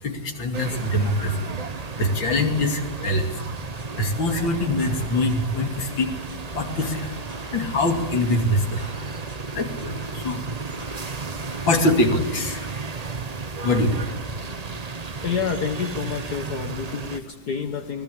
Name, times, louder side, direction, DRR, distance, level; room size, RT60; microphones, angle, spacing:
voice 1, 0.0-6.1 6.5-7.2 7.5-8.8 9.5-10.5 11.0-13.3 13.6-14.3 15.1-15.2, left 1 dB, 70° left, 5 dB, 3.3 m, -24 dB
sound 1, 0.5-17.2, right 4 dB, 40° right, 0.5 m, -34 dB
sound 2, 3.8-11.8, equal, 15° right, 2.3 m, -44 dB
voice 2, 15.2-18.0, left 6 dB, 55° left, 6 dB, 1.7 m, -28 dB
23.5 x 19.5 x 8.6 m, 1.1 s
omnidirectional pair, 2.2 m